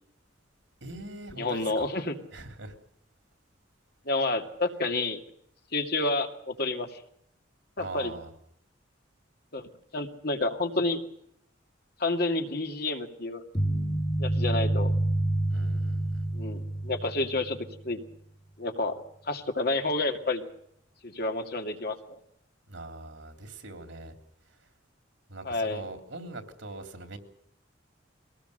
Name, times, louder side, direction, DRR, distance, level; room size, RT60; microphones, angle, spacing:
voice 1, 0.8-1.9 2.3-2.8 7.8-8.3 15.5-16.2 22.7-24.1 25.3-27.2, right 2 dB, 70° right, 7 dB, 3.3 m, -42 dB
voice 2, 1.3-2.2 4.1-5.2 5.7-7.0 7.8-8.1 9.5-11.0 12.0-13.4 14.2-14.9 16.3-18.0 18.6-20.4 21.0-22.2 25.4-25.9, left 2 dB, 55° left, 4 dB, 2.3 m, -30 dB
sound 1, 13.5-17.8, right 1 dB, 20° left, 2.1 m, -28 dB
23.0 x 18.5 x 6.6 m, 0.73 s
head